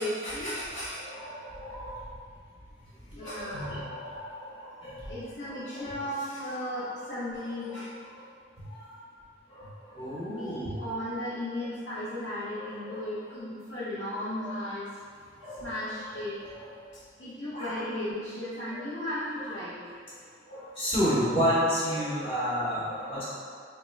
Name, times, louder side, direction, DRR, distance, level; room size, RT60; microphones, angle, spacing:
voice 1, 0.0-1.0 3.1-3.8 5.1-7.9 10.3-14.9 15.6-16.4 17.2-19.8, left 1 dB, 65° left, -12 dB, 0.7 m, -35 dB
voice 2, 1.0-2.1 3.1-5.1 5.4-5.9 6.8-7.1 7.6-8.2 8.6-9.0 9.5-10.8 12.6-13.3 14.4-14.6 15.4-15.7 16.4-16.7 17.5-17.7 18.7-18.8 19.4-19.5 20.5-23.2, equal, 30° left, -11 dB, 0.8 m, -32 dB
3.4 x 2.2 x 3.1 m, 2.1 s
head